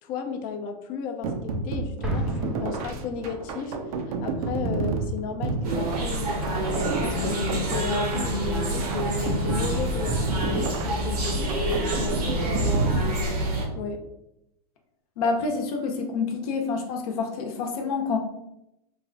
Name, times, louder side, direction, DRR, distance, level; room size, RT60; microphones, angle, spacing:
voice 1, 0.0-3.8 4.1-9.2 9.4-11.6 11.9-13.2 13.7-14.1, left 5 dB, 45° left, 5 dB, 0.6 m, -34 dB
sound 1, 1.2-13.8, right 3 dB, 65° right, 0.6 m, -31 dB
Explosion, 2.0-3.7, left 1 dB, 5° right, 0.5 m, -34 dB
sound 2, 5.6-13.6, equal, 80° right, 1.2 m, -27 dB
voice 2, 15.2-18.2, left 4 dB, 70° left, 2 dB, 0.9 m, -27 dB
3.1 x 2.2 x 3.8 m, 0.85 s
hypercardioid pair, 120°, 20 cm